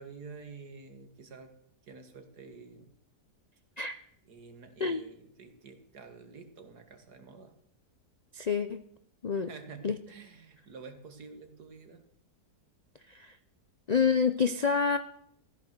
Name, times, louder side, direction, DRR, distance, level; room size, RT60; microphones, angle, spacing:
voice 1, 0.0-1.5 1.8-2.9 4.3-7.5 9.3-12.0, right 4 dB, 70° right, 6 dB, 2.3 m, -49 dB
voice 2, 8.3-8.8 9.2-9.5 9.8-10.0 13.1-13.4 13.9-15.0, left 5 dB, 75° left, 10 dB, 0.3 m, -27 dB
14.5 x 12.0 x 6.7 m, 0.67 s
omnidirectional pair, 1.8 m